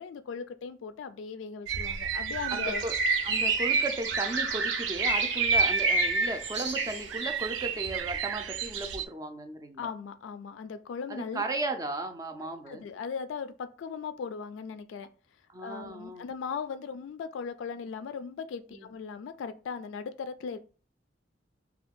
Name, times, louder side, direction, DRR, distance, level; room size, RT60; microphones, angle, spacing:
voice 1, 0.0-2.8 9.8-11.4 12.7-15.1 15.6-20.6, left 6 dB, 85° left, 0.3 m, -38 dB
sound 1, 1.7-9.1, right 8 dB, 85° right, 0.4 m, -35 dB
voice 2, 2.5-2.9 3.2-9.9 11.1-12.8 15.5-16.3 18.7-18.9, right 2 dB, 20° right, 0.4 m, -35 dB
Bird, 2.5-7.4, right 3 dB, 70° right, 0.9 m, -28 dB
2.6 x 2.3 x 3.5 m
head